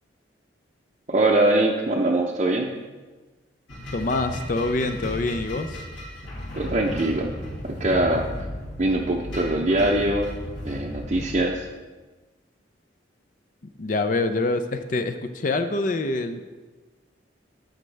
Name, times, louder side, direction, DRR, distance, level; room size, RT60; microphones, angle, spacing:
voice 1, 1.1-2.7 6.5-7.3 7.6-8.3 8.8-10.3 10.6-11.6, right 1 dB, 35° right, -2 dB, 0.6 m, -22 dB
sound 1, 3.7-11.4, equal, 65° left, 2.4 m, -35 dB
voice 2, 3.9-5.8 13.8-16.5, left 2 dB, 40° left, 8 dB, 0.5 m, -25 dB
11.5 x 7.5 x 3.3 m, 1.3 s
head